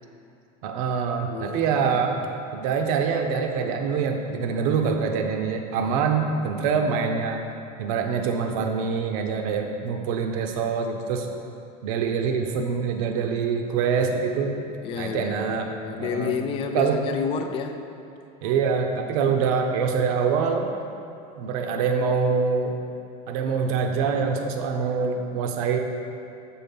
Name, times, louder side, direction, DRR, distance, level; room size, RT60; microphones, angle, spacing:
voice 1, 0.6-2.2 2.5-7.4 7.8-11.3 11.8-14.6 15.0-15.7 16.0-16.3 16.7-17.0 18.4-20.7 21.4-22.8 23.3-25.8, right 5 dB, 75° right, 4 dB, 0.8 m, -25 dB
voice 2, 1.3-2.3 14.8-17.8 19.2-19.3, left 6 dB, 30° left, 5 dB, 0.4 m, -31 dB
7.3 x 4.4 x 5.3 m, 2.7 s
supercardioid pair, 150°, 19 cm